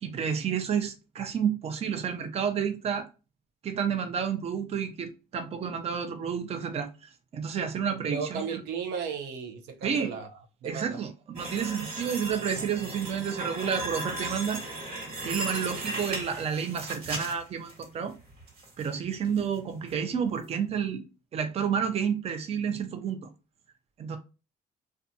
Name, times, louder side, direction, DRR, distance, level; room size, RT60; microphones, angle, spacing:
voice 1, 0.0-3.1 3.6-8.6 9.8-10.1 10.6-14.6 15.2-18.1 18.8-21.0 21.3-23.3 24.0-24.2, right 7 dB, 35° right, 0.5 m, -30 dB
voice 2, 8.0-11.0, right 6 dB, 85° right, 0.5 m, -35 dB
sound 1, 11.3-17.8 18.3-18.9 19.2-19.4 19.9-20.0, right 2 dB, 65° right, 1.4 m, -36 dB
2.5 x 2.3 x 2.6 m
cardioid pair, 110°, 17 cm